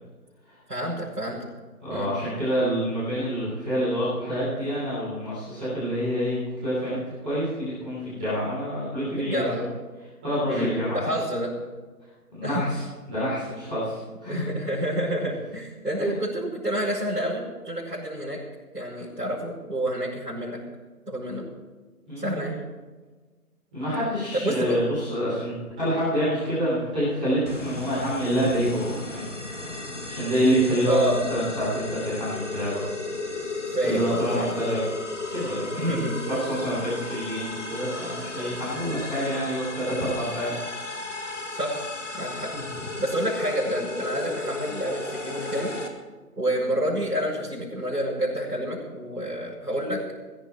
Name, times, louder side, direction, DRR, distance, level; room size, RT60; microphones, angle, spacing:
voice 1, 0.7-1.4 1.9-2.1 9.2-9.7 10.5-11.5 12.4-12.7 14.3-18.4 18.7-20.6 21.1-21.4 22.2-22.6 24.3-24.8 30.9-31.2 33.7-34.6 35.8-36.1 41.5-41.8 42.2-42.5 43.0-45.7 46.4-50.0, right 1 dB, 75° right, -8 dB, 6.5 m, -28 dB
voice 2, 1.8-7.0 7.2-9.6 10.2-11.0 12.3-14.4 16.0-16.1 22.1-22.5 23.7-29.7 30.1-32.8 33.8-34.8 35.3-36.0 36.4-40.5 42.5-42.9, equal, 5° right, -17 dB, 4.0 m, -27 dB
sound 1, 27.5-45.9, left 3 dB, 50° left, 2.0 m, -35 dB
21.5 x 11.5 x 4.6 m, 1.3 s
figure-of-eight pair, 170°, 48 cm